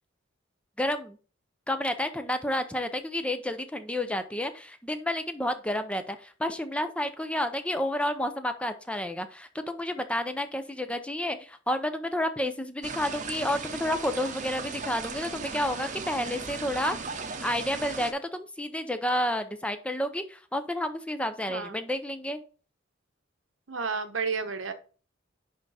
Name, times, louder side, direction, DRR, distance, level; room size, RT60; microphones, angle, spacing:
voice 1, 0.8-1.2 1.7-17.0 17.4-22.4, left 1 dB, 5° left, 9 dB, 0.6 m, -30 dB
sound 1, 12.8-18.1, right 4 dB, 40° right, 0.8 m, -37 dB
voice 2, 23.7-24.7, right 5 dB, 90° right, 8 dB, 1.0 m, -31 dB
10.5 x 3.6 x 4.2 m, 0.37 s
head